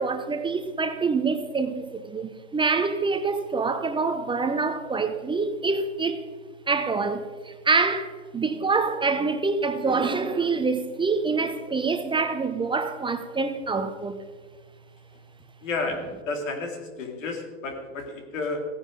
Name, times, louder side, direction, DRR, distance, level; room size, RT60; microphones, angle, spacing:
voice 1, 0.0-6.2 6.7-14.2, right 4 dB, 15° right, 0.7 m, -26 dB
voice 2, 15.6-18.7, left 3 dB, 85° left, 2.5 m, -31 dB
16.0 x 10.0 x 3.8 m
hypercardioid pair, 110°, 37 cm